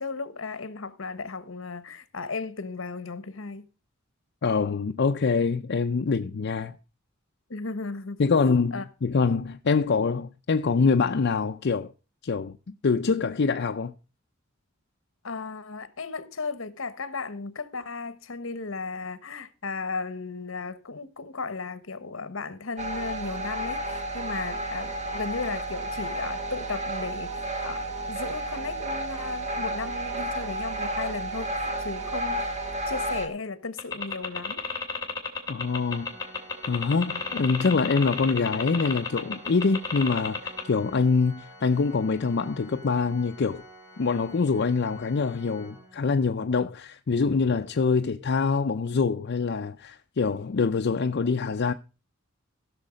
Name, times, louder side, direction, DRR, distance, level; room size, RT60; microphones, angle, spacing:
voice 1, 0.0-3.6 7.5-8.8 15.2-32.5 32.9-34.6, left 4 dB, 75° left, 1.1 m, -35 dB
voice 2, 4.4-6.8 8.2-11.9 12.2-12.6 12.8-13.9 35.5-36.1 36.7-43.6 44.0-51.7, left 4 dB, 55° left, 0.5 m, -25 dB
sound 1, 22.8-33.3, right 1 dB, 35° right, 1.6 m, -32 dB
sound 2, 33.8-40.6, left 5 dB, 20° left, 2.7 m, -31 dB
Organ, 35.6-46.5, equal, 15° right, 3.3 m, -49 dB
16.0 x 6.4 x 5.0 m
head